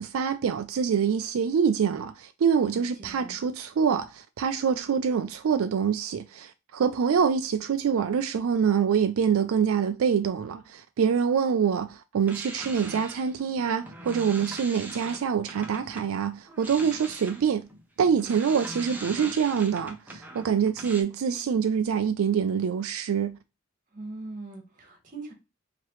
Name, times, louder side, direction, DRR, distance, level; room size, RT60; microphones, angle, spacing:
voice 1, 0.0-17.7 18.0-23.4, right 7 dB, 85° right, 0.4 m, -25 dB
voice 2, 2.6-3.4 18.3-19.3 23.9-25.3, right 2 dB, 40° right, 1.3 m, -43 dB
sound 1, 12.2-16.1 16.5-21.0, right 1 dB, 10° right, 0.6 m, -41 dB
4.7 x 2.9 x 3.0 m
head